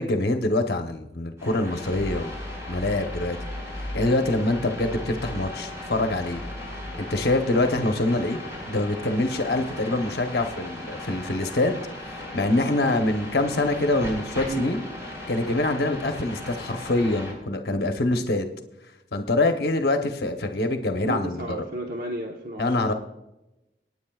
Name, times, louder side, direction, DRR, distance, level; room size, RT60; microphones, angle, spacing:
voice 1, 0.0-2.3 2.7-3.4 3.9-6.4 7.1-8.4 8.7-14.8 15.3-18.5 19.1-21.6 22.6-22.9, left 2 dB, 60° left, 5 dB, 0.9 m, -25 dB
sound 1, 1.4-17.3, left 1 dB, 15° right, 4.6 m, -38 dB
sound 2, 2.0-7.8, left 1 dB, 35° right, 2.4 m, -38 dB
voice 2, 21.0-22.9, right 2 dB, 50° right, 1 dB, 1.1 m, -33 dB
23.0 x 9.6 x 2.4 m, 0.93 s
head